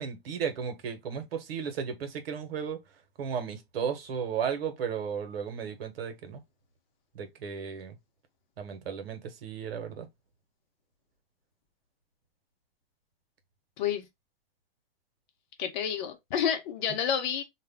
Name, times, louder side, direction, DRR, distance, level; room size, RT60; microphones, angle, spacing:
voice 1, 0.0-2.8 3.2-6.4 7.1-8.0 8.6-10.1, right 7 dB, 80° right, 1.0 m, -34 dB
voice 2, 15.6-17.4, left 8 dB, 50° left, 0.9 m, -29 dB
2.4 x 2.3 x 3.4 m
hypercardioid pair, 145°, 29 cm